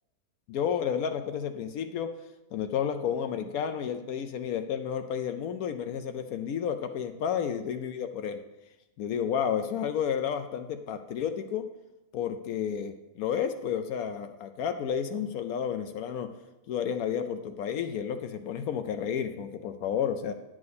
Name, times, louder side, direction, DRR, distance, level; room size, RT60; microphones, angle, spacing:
voice 1, 0.5-2.1 2.5-8.4 9.0-11.7 12.1-16.3 16.7-20.3, left 8 dB, 75° left, 7 dB, 1.0 m, -31 dB
9.5 x 7.7 x 4.1 m, 0.99 s
omnidirectional pair, 1.5 m